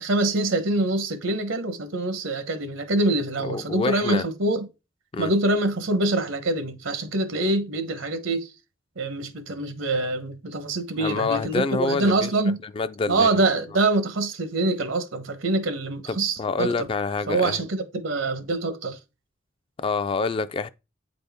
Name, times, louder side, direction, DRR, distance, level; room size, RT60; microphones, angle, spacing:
voice 1, 0.0-4.7 5.2-8.5 9.0-12.6 13.1-16.9 17.3-19.0, right 2 dB, 85° right, 0.9 m, -25 dB
voice 2, 3.4-4.2 5.1-5.3 11.0-12.3 12.6-13.3 16.1-17.6 19.8-20.7, left 4 dB, 30° left, 0.3 m, -27 dB
8.6 x 4.1 x 3.5 m
head